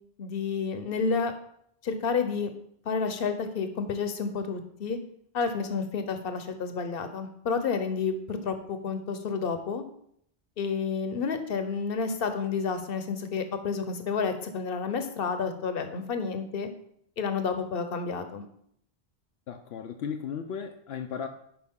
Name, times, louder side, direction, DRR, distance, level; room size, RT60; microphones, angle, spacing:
voice 1, 0.2-1.3 1.8-2.5 2.8-5.0 5.3-9.8 10.6-16.7 17.2-18.4, left 5 dB, 65° left, 8 dB, 1.0 m, -30 dB
voice 2, 19.5-21.3, left 7 dB, 80° left, 4 dB, 0.9 m, -35 dB
10.5 x 5.1 x 3.7 m, 0.70 s
omnidirectional pair, 1.1 m